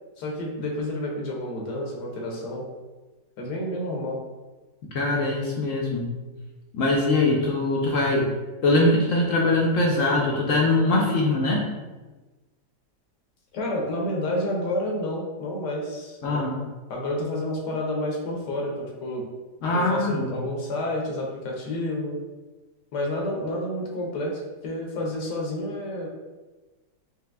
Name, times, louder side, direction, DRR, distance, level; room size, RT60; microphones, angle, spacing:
voice 1, 0.2-2.6 3.4-4.2 13.5-16.5 16.9-19.2 19.7-22.2 22.9-26.1, left 1 dB, 80° left, -1 dB, 1.4 m, -29 dB
voice 2, 4.9-6.1 6.7-8.4 8.6-11.6 16.2-16.6 19.6-20.3, left 2 dB, 65° left, -2 dB, 0.8 m, -22 dB
4.8 x 2.8 x 2.3 m, 1.2 s
omnidirectional pair, 1.8 m